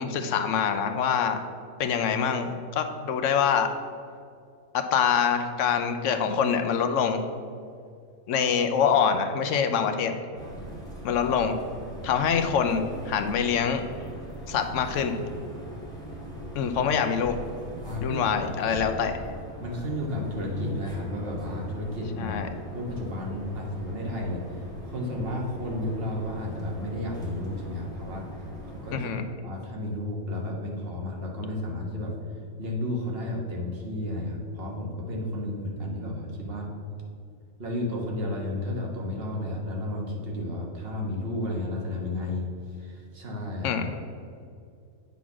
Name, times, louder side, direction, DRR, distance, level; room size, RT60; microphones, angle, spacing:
voice 1, 0.0-1.4 1.8-3.7 4.7-7.2 8.3-10.2 11.0-11.6 12.0-13.8 14.5-15.1 16.5-17.4 18.0-19.2 22.2-22.5 28.9-29.2 43.6-43.9, left 7 dB, 70° left, 7 dB, 0.9 m, -25 dB
sound 1, 10.3-29.0, right 1 dB, 5° left, 1.9 m, -40 dB
voice 2, 17.8-18.6 19.6-22.4 22.7-28.3 28.6-29.1 29.4-32.1 32.6-36.7 37.6-43.8, left 1 dB, 45° right, -1 dB, 1.4 m, -32 dB
8.0 x 4.1 x 6.0 m, 2.4 s
omnidirectional pair, 1.4 m